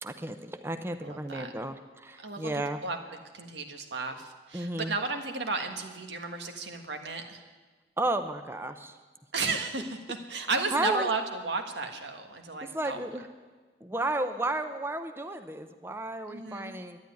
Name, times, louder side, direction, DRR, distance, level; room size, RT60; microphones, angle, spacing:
voice 1, 0.0-2.8 4.5-4.9 8.0-9.0 10.7-11.1 12.6-13.3 13.8-17.0, right 2 dB, 15° right, 8 dB, 0.6 m, -33 dB
voice 2, 1.0-1.5 2.2-2.5 2.8-3.0 3.3-7.4 9.3-13.1 16.3-16.8, right 3 dB, 85° right, 5 dB, 1.6 m, -33 dB
12.0 x 10.5 x 9.5 m, 1.4 s
head